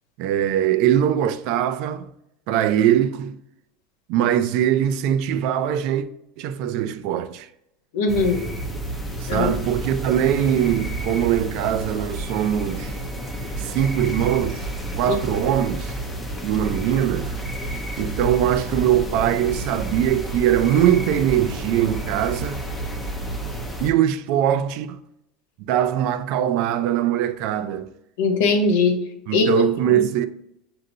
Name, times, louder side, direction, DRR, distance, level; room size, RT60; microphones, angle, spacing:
voice 1, 0.2-2.1 2.5-3.4 4.1-6.1 6.4-7.5 9.2-13.0 13.6-14.7 15.0-15.9 16.4-17.3 18.0-22.6 23.8-25.0 25.6-27.9 29.3-30.3, right 10 dB, 60° right, 0.3 m, -21 dB
voice 2, 7.9-8.4 9.3-9.5 15.1-15.4 28.2-29.0 29.3-30.0, left 4 dB, 85° left, 1.0 m, -21 dB
sound 1, 8.1-23.9, right 1 dB, 5° left, 0.6 m, -30 dB
6.3 x 2.6 x 2.7 m
supercardioid pair, 150°, 0 cm